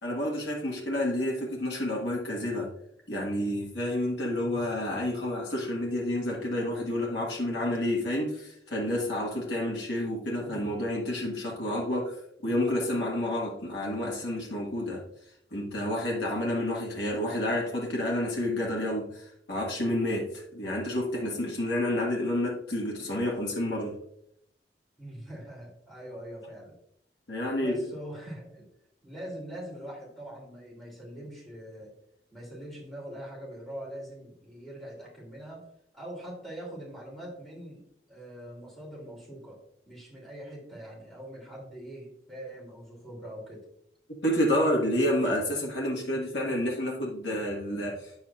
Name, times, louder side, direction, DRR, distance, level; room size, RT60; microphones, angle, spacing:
voice 1, 0.0-2.7 3.1-15.0 15.5-24.0 27.3-27.8 44.2-48.2, left 1 dB, 80° left, -3 dB, 1.6 m, -29 dB
voice 2, 25.0-26.8 27.6-28.7 29.0-31.9 32.3-35.7 35.9-39.6 39.8-43.7, right 1 dB, ahead, -4 dB, 3.0 m, -43 dB
9.0 x 7.2 x 2.4 m, 0.74 s
head